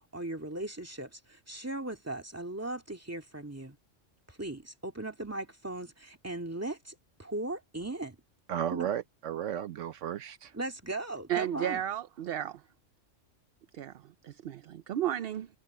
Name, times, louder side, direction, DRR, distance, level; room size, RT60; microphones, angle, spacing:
voice 1, 0.1-3.8 4.3-8.2 8.7-8.9 10.5-11.8, right 2 dB, 10° right, 2.1 m, -38 dB
voice 2, 8.5-10.5, right 10 dB, 75° right, 1.1 m, -34 dB
voice 3, 11.3-12.6 13.7-15.5, right 11 dB, 60° right, 0.7 m, -33 dB
omnidirectional pair, 1.3 m